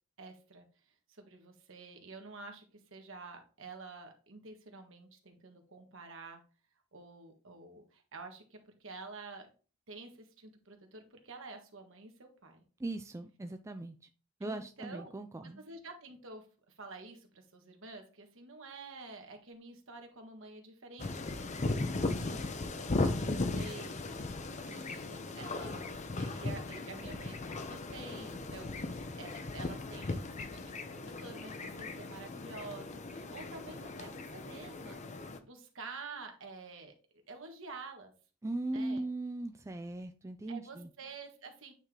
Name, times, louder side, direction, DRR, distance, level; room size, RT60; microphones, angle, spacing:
voice 1, 0.2-0.7 1.1-2.6 2.9-6.4 6.9-9.5 9.9-12.6 14.4-15.1 15.4-35.0 35.4-36.9 37.3-38.1 38.7-39.0 40.5-41.7, right 3 dB, 65° right, 4 dB, 1.5 m, -49 dB
voice 2, 12.8-14.0 14.4-15.6 38.4-40.9, right 2 dB, 15° right, 7 dB, 0.4 m, -39 dB
sound 1, 21.0-35.4, left 2 dB, 35° left, 0.6 m, -37 dB
8.8 x 3.7 x 3.2 m, 0.37 s
head